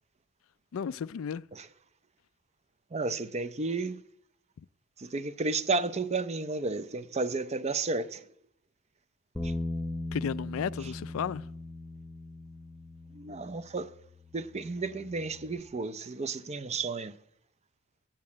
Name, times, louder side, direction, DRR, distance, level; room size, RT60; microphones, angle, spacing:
voice 1, 0.7-1.4 10.1-11.4, left 7 dB, 65° left, 0.3 m, -33 dB
voice 2, 2.9-4.0 5.0-8.3 9.4-9.5 10.8-10.9 13.1-13.9 14.3-17.2, right 3 dB, 30° right, 0.5 m, -32 dB
Bass guitar, 9.4-15.6, left 2 dB, 5° left, 0.7 m, -39 dB
8.9 x 8.6 x 8.4 m
head